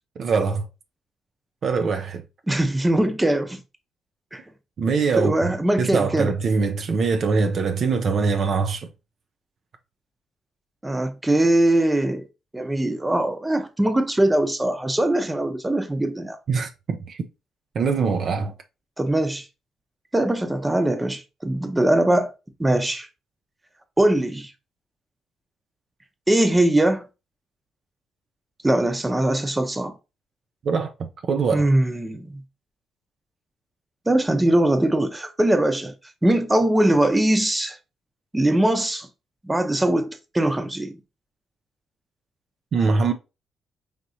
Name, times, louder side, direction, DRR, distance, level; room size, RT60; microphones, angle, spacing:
voice 1, 0.2-0.6 1.6-2.2 4.8-5.5 5.8-8.9 16.5-17.2 17.7-18.5 30.6-31.7 42.7-43.1, right 4 dB, 55° right, 0.5 m, -23 dB
voice 2, 2.5-3.6 4.3-4.4 5.2-6.3 10.8-12.3 12.5-16.4 19.0-19.5 20.1-22.3 22.6-23.1 24.0-24.5 26.3-27.1 28.6-29.9 31.5-32.4 34.1-35.9 36.2-37.8 38.3-39.1 39.4-41.0, right 1 dB, 15° right, 0.7 m, -21 dB
4.9 x 2.9 x 2.7 m
cardioid pair, 90°, 0 cm